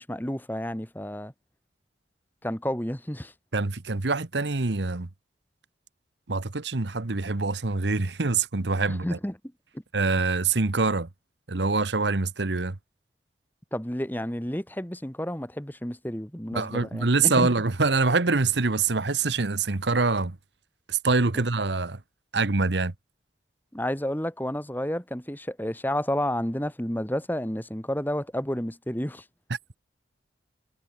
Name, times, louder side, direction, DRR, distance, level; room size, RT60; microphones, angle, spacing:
voice 1, 0.0-1.3 2.4-3.3 8.9-9.3 13.7-17.5 23.7-29.2, equal, 10° left, 1.9 m, -31 dB
voice 2, 3.5-5.1 6.3-9.2 9.9-11.1 11.5-12.8 16.5-20.4 20.9-22.0 22.3-22.9, right 3 dB, 75° right, 1.2 m, -25 dB
head